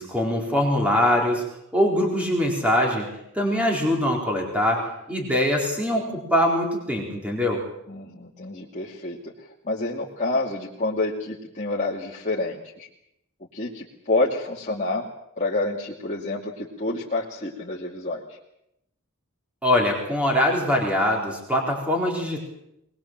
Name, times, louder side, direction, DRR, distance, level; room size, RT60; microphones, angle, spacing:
voice 1, 0.0-1.4 1.7-3.1 3.3-7.6 19.6-22.4, left 1 dB, 5° right, -1 dB, 4.3 m, -23 dB
voice 2, 7.9-9.3 9.6-12.9 13.5-15.0 15.4-18.4, left 2 dB, 35° left, -4 dB, 2.5 m, -28 dB
22.5 x 21.0 x 7.6 m, 0.81 s
head